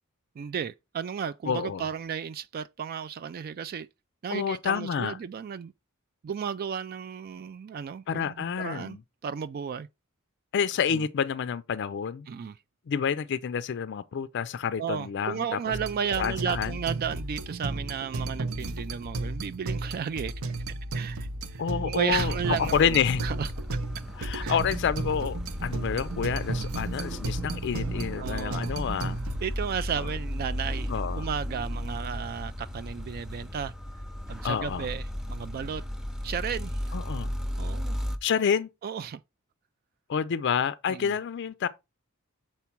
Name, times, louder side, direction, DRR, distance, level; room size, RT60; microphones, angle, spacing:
voice 1, 0.4-3.9 4.2-5.7 6.2-9.0 9.2-9.9 10.9-11.1 12.3-12.6 14.8-20.3 20.9-23.5 24.4-24.6 28.2-28.7 29.4-30.9 31.2-33.7 34.3-35.8 36.2-37.0 37.6-38.0 38.8-39.2 40.9-41.1, right 7 dB, 45° right, 0.3 m, -34 dB
voice 2, 1.5-1.8 4.3-5.2 8.1-9.0 10.5-12.3 12.9-15.6 16.2-16.7 21.6-23.2 24.2-29.2 30.0-30.1 30.9-31.3 34.4-34.9 36.9-37.3 38.2-38.7 40.1-41.7, left 7 dB, 55° left, 0.4 m, -28 dB
sound 1, 15.7-29.4, right 2 dB, 85° right, 0.8 m, -34 dB
sound 2, 22.1-38.2, equal, 5° right, 0.6 m, -35 dB
7.0 x 4.4 x 4.5 m
head